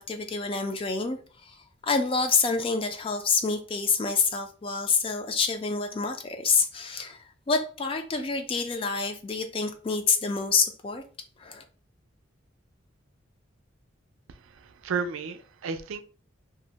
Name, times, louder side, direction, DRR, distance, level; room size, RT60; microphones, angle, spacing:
voice 1, 0.0-1.6 1.8-7.2 7.5-11.0 11.4-11.6, left 4 dB, 25° left, 0.3 m, -27 dB
voice 2, 14.3-16.0, right 5 dB, 85° right, 0.4 m, -33 dB
2.6 x 2.0 x 3.9 m
head